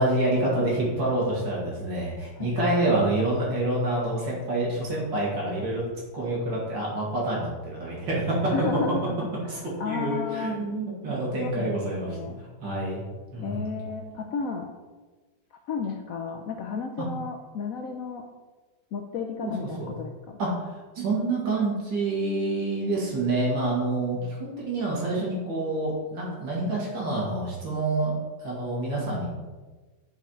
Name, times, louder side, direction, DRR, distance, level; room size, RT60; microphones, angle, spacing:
voice 1, 0.0-5.9 6.1-8.7 9.5-9.6 9.8-12.2 12.6-13.0 13.3-13.7 19.4-19.5 19.8-19.9 20.4-28.1 28.4-29.4, right 2 dB, 80° right, -4 dB, 2.9 m, -27 dB
voice 2, 8.5-9.1 9.4-10.7 11.4-12.4 13.4-14.7 15.7-18.2 18.9-20.4, left 5 dB, 70° left, 3 dB, 0.8 m, -33 dB
8.6 x 4.9 x 4.5 m, 1.3 s
omnidirectional pair, 2.0 m